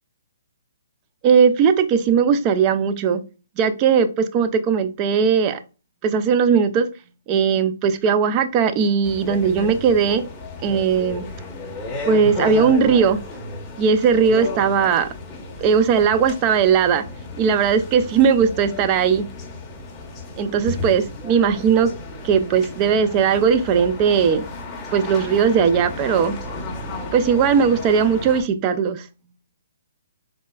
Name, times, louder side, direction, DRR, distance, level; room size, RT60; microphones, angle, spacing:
voice 1, 1.2-3.2 3.6-5.6 6.0-6.9 7.3-10.2 10.6-11.2 12.1-13.2 13.8-15.1 15.6-17.1 17.4-19.3 20.4-21.9 22.2-24.4 24.9-26.4 27.1-29.1, right 6 dB, 30° right, 10 dB, 0.3 m, -18 dB
sound 1, 9.0-28.4, left 2 dB, 15° left, 0.7 m, -33 dB
3.9 x 2.3 x 2.2 m, 0.32 s
hypercardioid pair, 140°, 0 cm